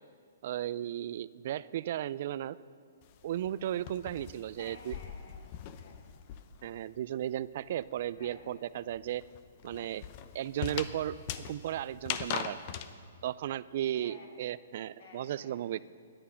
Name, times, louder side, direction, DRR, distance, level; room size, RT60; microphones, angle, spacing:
voice 1, 0.4-2.6 3.2-4.9 6.6-9.2 9.6-10.0 10.3-11.1 11.5-12.6 13.2-15.8, right 12 dB, 55° right, 18 dB, 0.4 m, -35 dB
sound 1, 3.0-6.8 7.0-12.9, left 9 dB, 45° left, 0.8 m, -41 dB
voice 2, 4.6-6.3 8.1-8.6 13.9-14.3 15.0-15.7, left 3 dB, 60° left, 1 dB, 2.9 m, -54 dB
18.0 x 10.0 x 5.7 m, 2.1 s
hypercardioid pair, 130°, 0 cm